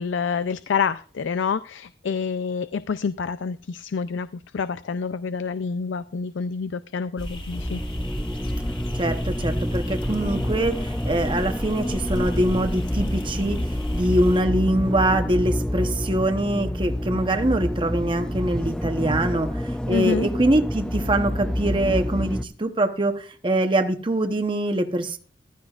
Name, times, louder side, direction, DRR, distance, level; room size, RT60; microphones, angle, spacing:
voice 1, 0.0-4.3 4.5-7.8 19.9-20.3, left 5 dB, 90° left, 14 dB, 0.4 m, -27 dB
sound 1, 7.2-14.4, equal, 30° left, 2.1 m, -33 dB
sound 2, 7.5-22.4, left 1 dB, 5° left, 0.4 m, -28 dB
voice 2, 8.9-25.2, right 1 dB, 25° right, 6 dB, 0.9 m, -24 dB
14.5 x 13.0 x 2.4 m, 0.40 s
head